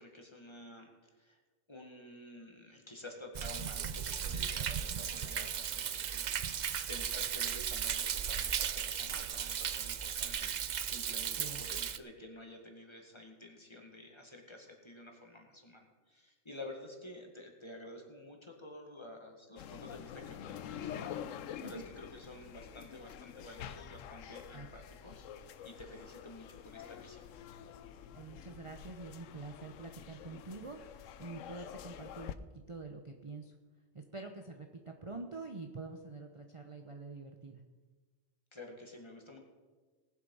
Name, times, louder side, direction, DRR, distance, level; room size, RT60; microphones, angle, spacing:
voice 1, 0.0-1.4 1.7-6.6 6.9-27.3 38.5-39.4, left 1 dB, 20° left, 2 dB, 1.9 m, -51 dB
Thunder, 3.3-12.0, right 8 dB, 55° right, 0.5 m, -36 dB
sound 1, 19.6-32.3, left 9 dB, 85° left, 1.0 m, -47 dB
voice 2, 28.1-33.6 33.9-37.6, right 3 dB, 30° right, 4 dB, 0.8 m, -46 dB
19.0 x 7.8 x 5.5 m, 1.4 s
omnidirectional pair, 1.3 m